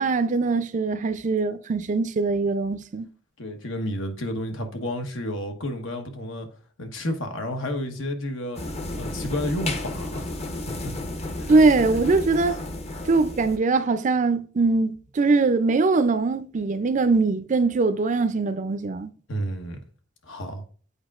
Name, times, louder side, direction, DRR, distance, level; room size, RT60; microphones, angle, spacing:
voice 1, 0.0-3.1 11.5-12.6 13.1-19.1, right 3 dB, 40° right, 0.4 m, -22 dB
voice 2, 3.4-6.5 6.8-8.6 9.0-10.9 11.4-11.5 19.3-19.8 20.2-20.6, left 1 dB, 80° left, 1.2 m, -31 dB
sound 1, 8.5-13.6, left 1 dB, 35° left, 0.8 m, -32 dB
8.2 x 5.0 x 2.4 m
head